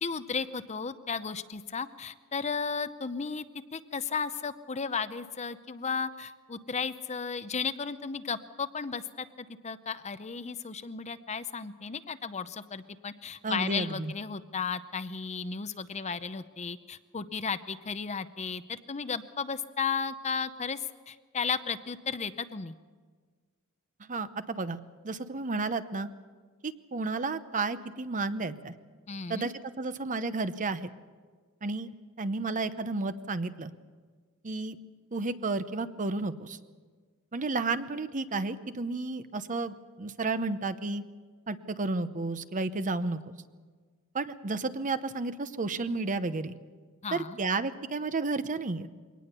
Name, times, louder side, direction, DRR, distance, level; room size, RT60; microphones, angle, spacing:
voice 1, 0.0-3.5 3.7-22.7 29.1-29.5 47.0-47.4, left 5 dB, 30° left, 12 dB, 0.7 m, -34 dB
voice 2, 13.4-14.1 24.1-24.8 25.0-26.1 26.6-28.7 29.3-30.9 31.6-31.9 32.2-33.7 34.4-34.8 35.1-36.6 37.3-41.0 41.5-43.3 44.1-46.5 47.1-48.9, right 3 dB, 35° right, 12 dB, 0.8 m, -32 dB
23.0 x 18.5 x 6.8 m, 1.5 s
head